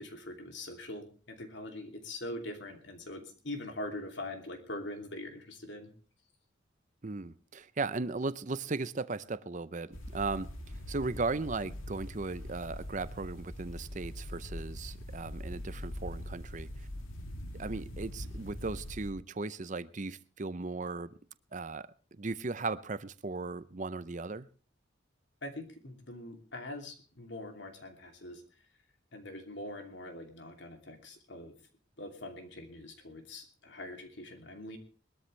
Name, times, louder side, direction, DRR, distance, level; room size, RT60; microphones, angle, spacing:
voice 1, 0.0-5.9 25.4-28.4 29.1-31.6 32.0-34.8, left 1 dB, 60° left, 2.9 m, -43 dB
voice 2, 7.0-10.5 10.9-16.9 17.6-21.1 21.5-24.5, right 3 dB, 40° right, 0.6 m, -37 dB
sound 1, 9.9-19.1, left 1 dB, 90° left, 2.6 m, -42 dB
21.0 x 13.0 x 3.3 m
head